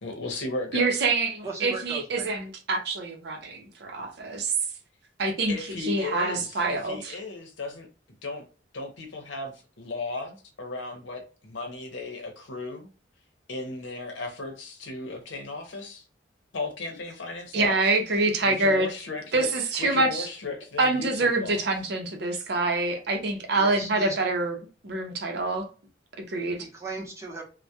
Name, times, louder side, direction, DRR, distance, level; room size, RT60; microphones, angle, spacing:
voice 1, 0.0-1.0 5.5-7.9 8.2-8.4 8.7-12.9 13.5-16.0 16.5-17.9 18.4-19.5 19.8-21.6, left 3 dB, 85° left, 0.7 m, -36 dB
voice 2, 0.7-4.5 5.2-5.5 5.8-7.1 17.5-18.9 19.3-20.3 20.8-24.5 24.8-25.7 26.2-26.6, right 2 dB, 60° right, 0.6 m, -26 dB
voice 3, 1.4-2.2 23.5-24.2 26.6-27.4, right 3 dB, 15° right, 0.7 m, -37 dB
2.2 x 2.1 x 2.7 m
head